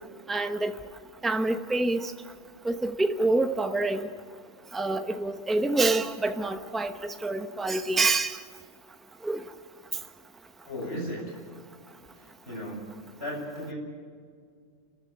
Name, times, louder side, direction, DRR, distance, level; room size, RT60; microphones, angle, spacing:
voice 1, 0.3-0.7 1.2-2.1 2.6-4.1 4.7-8.4 9.2-9.4, right 2 dB, ahead, 7 dB, 0.9 m, -27 dB
voice 2, 10.7-11.4 12.1-12.9 13.2-13.7, equal, 50° left, -2 dB, 8.0 m, -36 dB
30.0 x 14.0 x 7.7 m, 2.1 s
omnidirectional pair, 1.3 m